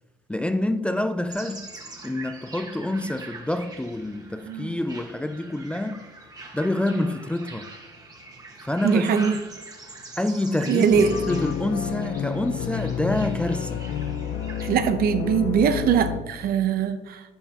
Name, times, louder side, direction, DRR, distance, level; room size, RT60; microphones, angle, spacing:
voice 1, 0.3-1.7 2.0-6.1 6.5-7.7 8.6-9.3 10.2-13.8, left 1 dB, 5° left, 0.4 m, -27 dB
sound 1, 1.3-14.7, right 3 dB, 20° right, 1.5 m, -43 dB
Sigh, 4.3-4.9, right 5 dB, 90° right, 1.1 m, -39 dB
voice 2, 8.8-9.4 10.7-11.1 14.6-17.2, right 7 dB, 65° right, 0.8 m, -21 dB
sound 2, 10.9-16.2, left 9 dB, 75° left, 0.7 m, -30 dB
11.0 x 7.0 x 2.9 m
cardioid pair, 110°, 17 cm